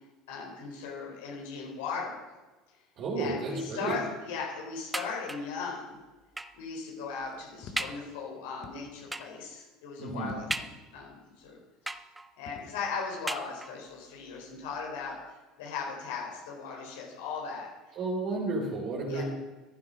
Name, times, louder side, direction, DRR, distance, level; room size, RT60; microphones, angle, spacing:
voice 1, 0.3-2.2 3.2-5.9 6.6-10.4 10.9-11.1 11.4-11.6 12.4-15.2 15.6-17.7 19.1-19.2, left 5 dB, 90° left, -1 dB, 4.3 m, -37 dB
voice 2, 3.0-4.0 10.0-10.3 18.0-19.2, right 3 dB, 50° right, -4 dB, 4.0 m, -32 dB
sound 1, 4.9-5.6 6.4-6.7 7.2-7.3 7.8-8.1 9.1-9.5 10.5-11.1 11.9-12.5 13.3-13.9 14.8-14.9 15.2-15.3, right 2 dB, 10° right, 0.7 m, -37 dB
sound 2, 7.3-8.0 8.6-9.3 10.1-11.1 12.5-12.8, left 5 dB, 45° left, 1.7 m, -48 dB
14.5 x 11.0 x 5.4 m, 1.2 s
supercardioid pair, 120°, 0 cm